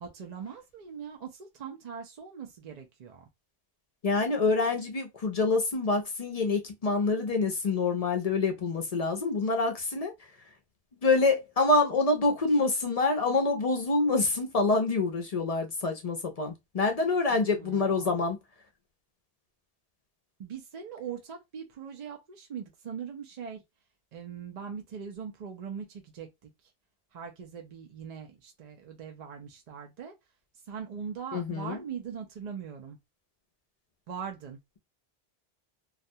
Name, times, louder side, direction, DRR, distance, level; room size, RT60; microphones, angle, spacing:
voice 1, 0.0-3.2 17.3-18.2 20.4-23.6 24.1-26.5 27.1-30.1 30.7-33.0 34.1-34.6, right 7 dB, 55° right, 0.5 m, -41 dB
voice 2, 4.0-10.1 11.0-18.4 31.3-31.8, left 3 dB, 50° left, 0.5 m, -26 dB
2.4 x 2.1 x 2.6 m
omnidirectional pair, 1.0 m